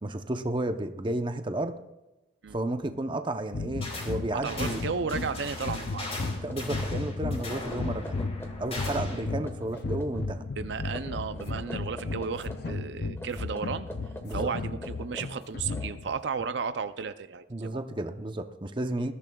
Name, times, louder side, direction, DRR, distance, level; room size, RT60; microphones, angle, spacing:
voice 1, 0.0-1.7 2.5-4.8 6.4-8.2 8.6-10.4 14.2-14.5 17.5-19.1, right 1 dB, 25° right, 7 dB, 0.7 m, -32 dB
sound 1, 3.5-16.2, left 3 dB, 55° left, 0.5 m, -35 dB
sound 2, 3.8-4.1 4.4-9.3, left 2 dB, 35° left, 3.7 m, -39 dB
voice 2, 4.4-6.1 8.9-9.1 10.6-13.9 14.3-17.8, right 5 dB, 65° right, 11 dB, 0.5 m, -34 dB
sound 3, 6.5-8.8 9.0-10.3 10.9-12.8 13.2-16.4, equal, 15° left, 1.3 m, -45 dB
20.5 x 14.0 x 2.3 m, 1.0 s
head